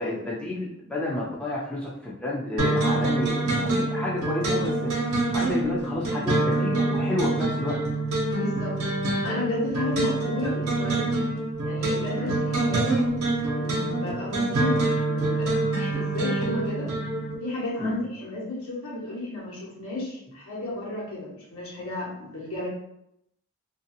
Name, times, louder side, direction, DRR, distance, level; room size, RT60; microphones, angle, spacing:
voice 1, 0.0-4.9 5.3-7.8 12.1-12.3 17.8-18.0, left 2 dB, 5° left, -6 dB, 0.4 m, -30 dB
sound 1, 2.6-17.3, right 2 dB, 75° right, 0.8 m, -26 dB
voice 2, 8.4-8.8 9.2-11.1 11.6-12.9 13.6-16.9 17.4-22.7, left 2 dB, 75° left, -5 dB, 1.1 m, -33 dB
2.5 x 2.4 x 2.6 m, 0.76 s
head